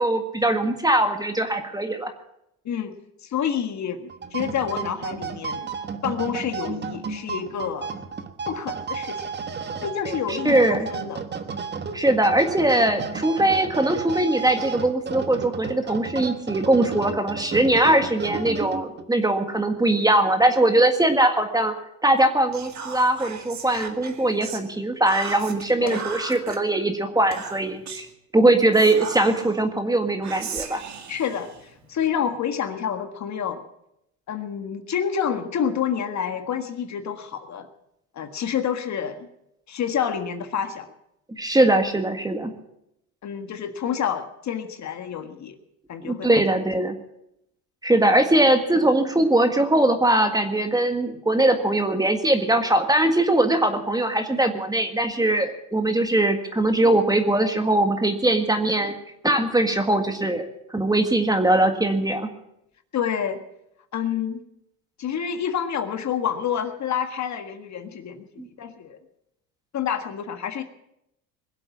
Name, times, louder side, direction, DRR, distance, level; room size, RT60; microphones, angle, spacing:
voice 1, 0.0-2.1 10.3-10.9 11.9-21.7 22.0-28.1 28.3-30.8 41.4-42.6 46.0-47.0 47.8-59.0 59.2-62.3 68.4-68.5, right 1 dB, 10° right, 6 dB, 1.7 m, -21 dB
voice 2, 2.7-3.0 3.2-5.7 6.0-7.9 8.5-9.3 9.8-11.2 25.8-26.0 31.1-33.6 34.3-37.7 38.1-39.3 39.7-40.9 43.2-45.6 45.9-46.4 62.9-63.4 63.9-64.4 65.0-68.2 68.6-69.0 69.7-70.6, left 8 dB, 40° left, 7 dB, 1.7 m, -28 dB
sound 1, 4.1-19.1, right 5 dB, 25° right, 1.4 m, -32 dB
Whispering, 22.5-24.7 25.1-26.6 27.3-28.1 28.7-29.6 30.2-32.1, right 6 dB, 40° right, 2.2 m, -36 dB
21.5 x 8.0 x 8.5 m, 0.81 s
supercardioid pair, 100°, 43 cm